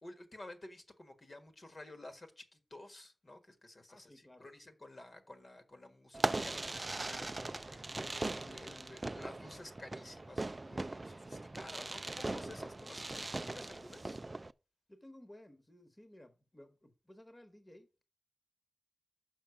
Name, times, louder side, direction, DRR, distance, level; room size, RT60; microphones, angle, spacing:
voice 1, 0.0-14.2, left 2 dB, 40° left, 1.5 m, -53 dB
voice 2, 3.9-4.5 14.9-18.0, left 1 dB, 20° left, 1.3 m, -57 dB
Fireworks, 6.1-14.5, right 2 dB, 30° right, 0.4 m, -40 dB
6.4 x 5.7 x 6.9 m
wide cardioid pair, 110°, 0 cm